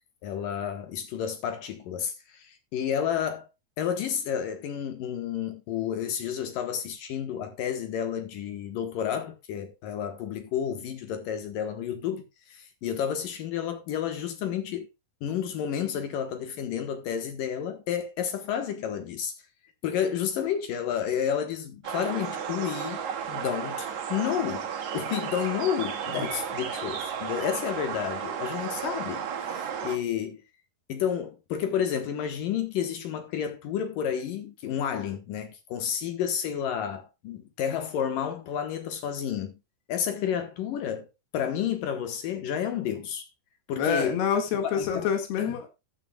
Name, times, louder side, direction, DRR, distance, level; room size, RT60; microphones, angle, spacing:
voice 1, 0.2-3.5 3.8-14.9 15.2-19.3 19.8-30.4 30.9-39.6 39.9-41.1 41.3-43.3 43.7-44.2 44.7-45.1 45.4-45.6, left 9 dB, 65° left, 2.7 m, -31 dB
sound 1, 21.8-30.0, right 8 dB, 55° right, 2.7 m, -33 dB
voice 2, 43.7-45.7, left 7 dB, 85° left, 4.1 m, -27 dB
13.5 x 10.0 x 2.3 m
omnidirectional pair, 4.5 m